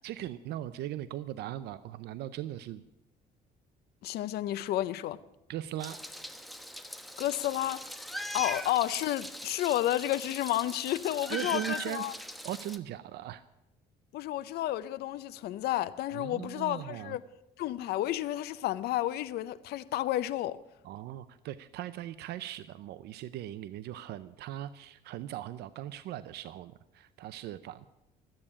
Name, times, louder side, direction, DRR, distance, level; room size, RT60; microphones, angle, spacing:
voice 1, 0.0-2.8 5.5-6.0 11.3-12.2 12.4-13.4 16.1-17.2 20.8-27.9, right 13 dB, 75° right, 0.6 m, -39 dB
voice 2, 4.0-5.2 7.2-7.8 8.3-12.1 14.1-17.2 17.6-20.6, left 14 dB, 70° left, 0.6 m, -31 dB
Meow, 5.8-12.8, equal, ahead, 1.1 m, -41 dB
13.0 x 8.8 x 9.9 m
cardioid pair, 110°, 17 cm